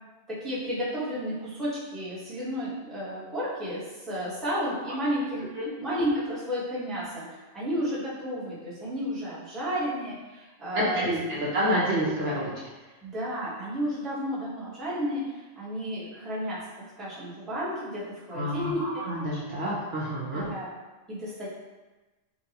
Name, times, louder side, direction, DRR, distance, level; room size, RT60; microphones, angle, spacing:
voice 1, 0.3-5.4 5.8-11.1 13.0-16.6 17.0-19.0 20.3-20.7 21.1-21.5, equal, ahead, -10 dB, 0.8 m, -32 dB
voice 2, 10.7-11.2 11.5-12.5 18.3-20.4, equal, 60° right, -6 dB, 0.9 m, -28 dB
3.9 x 2.2 x 2.8 m, 1.2 s
omnidirectional pair, 1.3 m